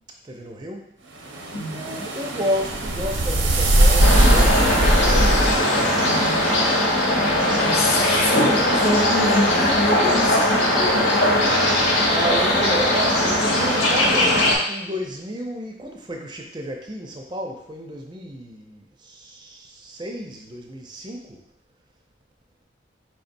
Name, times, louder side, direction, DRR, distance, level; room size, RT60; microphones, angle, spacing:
voice 1, 0.2-0.9 1.7-7.0 7.3-7.9 8.5-9.0 11.5-21.4, equal, 25° right, 2 dB, 0.4 m, -32 dB
sound 1, 1.3-6.6, right 1 dB, 85° right, 0.7 m, -20 dB
voice 2, 1.5-2.0 6.0-6.5 7.5-11.6, left 2 dB, 50° left, -1 dB, 0.7 m, -26 dB
sound 2, 4.0-14.6, left 1 dB, 85° left, 1.0 m, -19 dB
4.6 x 4.0 x 2.6 m, 0.72 s
head